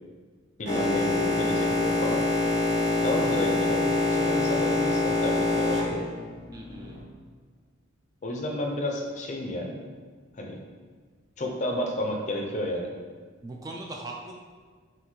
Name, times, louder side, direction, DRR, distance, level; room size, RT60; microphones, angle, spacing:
voice 1, 0.6-2.2 3.0-6.0 8.2-9.8 10.3-10.6 11.4-12.9, left 1 dB, 35° left, 1 dB, 0.5 m, -31 dB
Boat Water vehicle, 0.6-7.0, left 2 dB, 55° right, 1.5 m, -25 dB
voice 2, 6.5-7.0 13.4-14.3, right 2 dB, 15° right, 0 dB, 0.3 m, -39 dB
5.7 x 2.6 x 3.1 m, 1.5 s
head